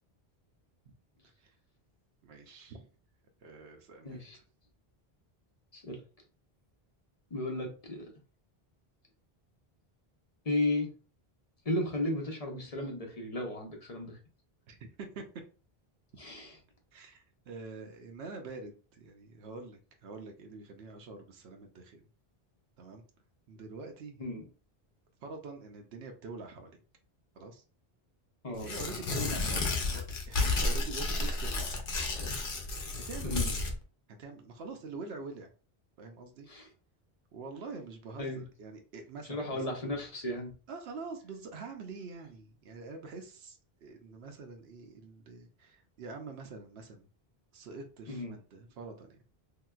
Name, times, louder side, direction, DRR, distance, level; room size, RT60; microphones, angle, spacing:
voice 1, 2.2-2.9 3.4-4.2 14.7-15.2 16.9-22.0 22.8-23.0 23.5-24.3 25.2-26.8 27.4-27.6 28.6-31.7 32.1-32.3 33.1-33.6 34.2-35.5 36.0-36.5 37.3-39.6 40.7-47.1 47.5-49.2, right 3 dB, 85° right, 4 dB, 0.9 m, -45 dB
voice 2, 4.0-4.4 5.7-6.0 7.3-8.1 10.4-10.9 11.6-14.2 16.2-16.6 24.2-24.5 28.4-28.7 33.2-33.5 36.5-36.7 38.2-38.4 39.3-40.5 48.1-48.4, left 1 dB, 40° left, 1 dB, 0.7 m, -34 dB
Tearing, 28.6-33.7, left 3 dB, 65° left, 0.9 m, -32 dB
3.2 x 2.8 x 2.3 m, 0.37 s
omnidirectional pair, 1.0 m